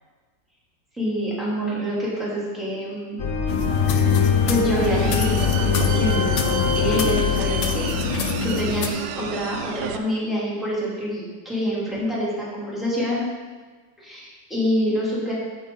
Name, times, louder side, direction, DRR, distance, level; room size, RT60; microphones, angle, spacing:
voice 1, 1.0-3.2 3.9-7.9 8.4-13.3 14.0-15.3, equal, ahead, -8 dB, 2.8 m, -26 dB
sound 1, 3.2-8.3, left 6 dB, 55° left, 1.4 m, -23 dB
sound 2, 3.5-8.9, left 8 dB, 70° left, 1.2 m, -27 dB
sound 3, 4.7-10.0, right 6 dB, 75° right, 1.1 m, -30 dB
8.9 x 8.1 x 3.9 m, 1.5 s
omnidirectional pair, 1.9 m